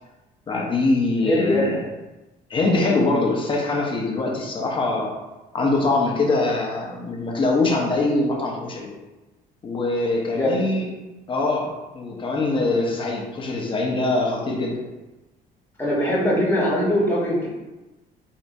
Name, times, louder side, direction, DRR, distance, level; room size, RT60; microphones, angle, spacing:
voice 1, 0.5-1.8 2.5-5.1 5.5-8.9 9.6-10.9 11.3-14.8, left 2 dB, 30° left, -1 dB, 0.9 m, -23 dB
voice 2, 1.2-1.6 10.3-10.5 15.8-17.5, left 1 dB, 10° left, -6 dB, 1.3 m, -21 dB
4.5 x 2.8 x 2.7 m, 1.1 s
cardioid pair, 110°, 17 cm